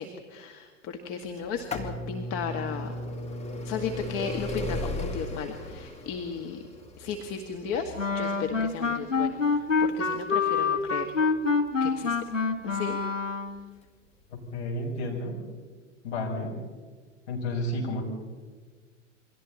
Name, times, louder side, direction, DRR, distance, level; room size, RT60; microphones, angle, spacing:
voice 1, 0.0-3.0 3.6-6.6 7.0-11.1 11.8-12.2 12.6-13.0, left 6 dB, 40° left, 4 dB, 1.8 m, -35 dB
sound 1, 1.4-13.0 13.8-13.9 14.9-15.0 15.2-15.3, left 1 dB, 15° left, 2.6 m, -37 dB
Wind instrument woodwind instrument, 8.0-13.6, left 4 dB, 85° left, 1.6 m, -26 dB
voice 2, 14.5-15.4 16.0-16.5 17.3-18.0, left 1 dB, 55° left, -1 dB, 6.9 m, -31 dB
28.5 x 24.0 x 4.2 m, 1.5 s
figure-of-eight pair, 90°, 37 cm